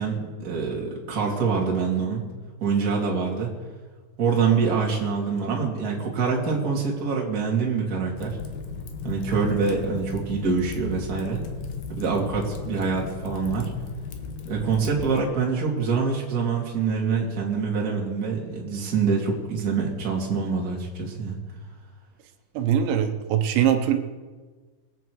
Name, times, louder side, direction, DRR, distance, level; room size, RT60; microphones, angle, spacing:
voice 1, 0.0-2.2 2.6-3.5 4.2-8.4 9.0-11.4 11.9-13.7 14.4-21.4, right 5 dB, 30° right, -2 dB, 1.8 m, -25 dB
Fire, 8.2-15.2, left 5 dB, 75° left, 2.0 m, -36 dB
voice 2, 22.6-24.0, right 9 dB, 75° right, 6 dB, 3.1 m, -22 dB
22.5 x 8.6 x 4.7 m, 1.4 s
omnidirectional pair, 5.5 m